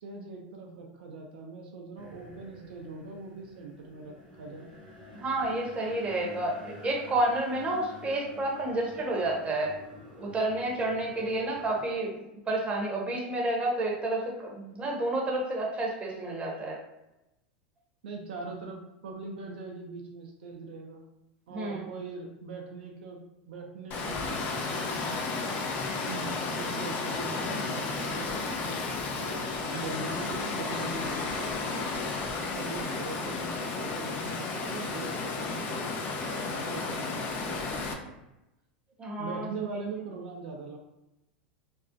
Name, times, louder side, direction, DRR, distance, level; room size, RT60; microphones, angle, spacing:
voice 1, 0.0-4.7 18.0-21.0 21.5-25.0 26.1-28.5 29.2-31.5 32.5-35.9 36.3-38.2 39.2-40.8, right 4 dB, 75° right, 0 dB, 0.4 m, -41 dB
sound 1, 2.0-11.9, left 1 dB, 80° left, 0.9 m, -49 dB
voice 2, 5.1-9.7 10.2-12.2 12.5-16.8 21.5-21.8 39.0-39.5, right 2 dB, 20° right, -2 dB, 0.7 m, -30 dB
Water, 23.9-37.9, left 3 dB, 40° left, 0.4 m, -33 dB
2.5 x 2.0 x 2.5 m, 0.93 s
hypercardioid pair, 95°, 5 cm